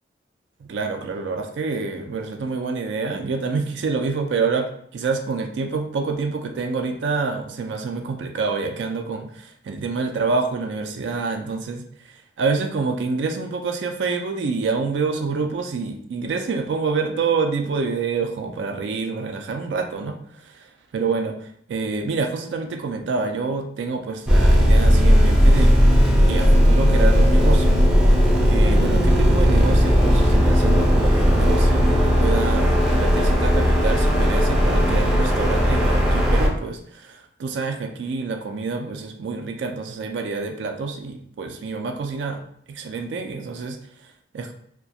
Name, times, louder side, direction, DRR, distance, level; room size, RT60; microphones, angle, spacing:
voice 1, 0.6-25.7 26.3-27.8 28.5-42.4 42.7-44.5, right 4 dB, 80° right, 5 dB, 0.3 m, -27 dB
sound 1, 24.3-36.5, equal, 5° right, 0.3 m, -16 dB
2.3 x 2.2 x 2.7 m, 0.67 s
head